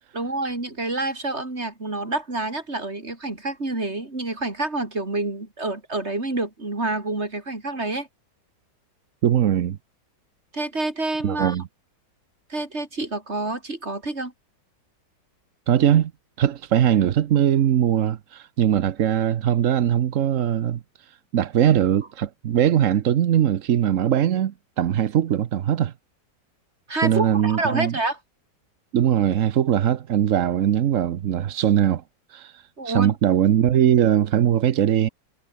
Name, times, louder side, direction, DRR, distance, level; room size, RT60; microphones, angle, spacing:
voice 1, 0.1-8.1 10.5-11.6 12.5-14.3 26.9-28.2 32.8-33.2, right 2 dB, 35° right, 4.6 m, -28 dB
voice 2, 9.2-9.8 11.2-11.6 15.7-16.1 16.4-25.9 27.0-27.9 28.9-32.0 32.3-35.1, right 10 dB, 55° right, 1.0 m, -21 dB
omnidirectional pair, 1.9 m